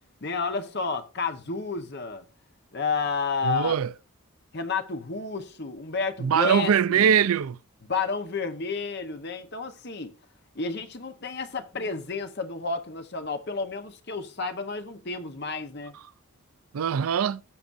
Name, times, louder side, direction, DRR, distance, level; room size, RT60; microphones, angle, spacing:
voice 1, 0.2-2.2 2.7-3.8 4.5-7.3 7.8-10.1 10.5-16.0, left 4 dB, 50° left, 1.0 m, -31 dB
voice 2, 3.4-3.9 6.2-7.6 16.7-17.4, right 8 dB, 80° right, 0.4 m, -22 dB
17.5 x 6.0 x 2.6 m
head